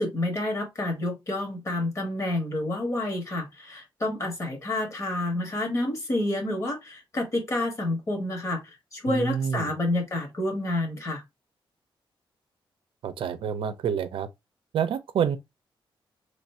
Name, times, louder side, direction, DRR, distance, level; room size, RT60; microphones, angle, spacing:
voice 1, 0.0-8.6 8.9-11.2, left 1 dB, 35° left, 1.4 m, -29 dB
voice 2, 9.0-9.7 13.0-14.3 14.7-15.4, right 7 dB, 70° right, 0.5 m, -28 dB
3.2 x 2.5 x 4.2 m
wide cardioid pair, 155°, 9 cm